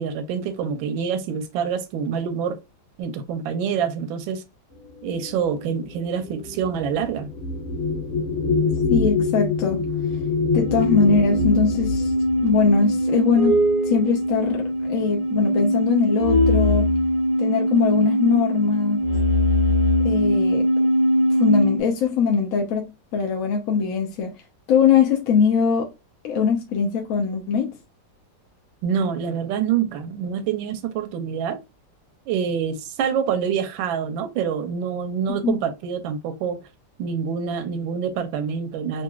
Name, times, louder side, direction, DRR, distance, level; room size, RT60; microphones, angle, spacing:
voice 1, 0.0-2.6 3.0-4.4 5.0-7.3 28.8-31.6 32.3-36.6 37.0-39.0, right 7 dB, 85° right, 1.3 m, -26 dB
sound 1, 5.0-13.9 14.8-15.0 15.3-15.9, left 4 dB, 35° left, 1.4 m, -26 dB
voice 2, 8.9-9.8 10.5-12.1 12.4-13.6 13.9-16.9 17.4-19.0 20.0-20.6 21.4-24.4 24.7-25.9 26.2-27.7 35.4-35.6, left 6 dB, 70° left, 0.8 m, -21 dB
sound 2, 10.6-21.8, equal, 20° right, 0.8 m, -21 dB
3.9 x 2.4 x 2.3 m
omnidirectional pair, 2.1 m